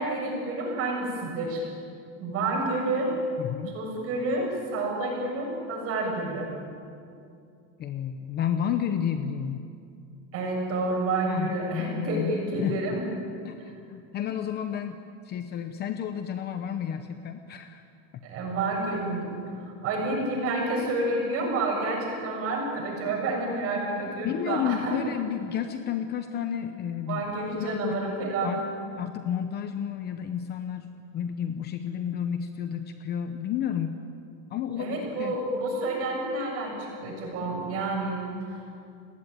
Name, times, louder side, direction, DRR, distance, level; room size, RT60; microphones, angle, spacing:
voice 1, 0.0-1.6 2.2-3.1 3.7-6.5 10.3-13.0 18.2-25.0 27.1-28.6 34.8-38.6, right 2 dB, 35° right, 1 dB, 7.4 m, -29 dB
voice 2, 3.4-3.8 7.8-9.7 11.2-13.0 13.4-17.8 24.2-27.2 27.6-28.0 28.4-28.6 29.0-34.0 34.5-35.4, left 9 dB, 25° left, 8 dB, 0.8 m, -31 dB
29.5 x 19.5 x 9.3 m, 2.5 s
supercardioid pair, 175°, 40 cm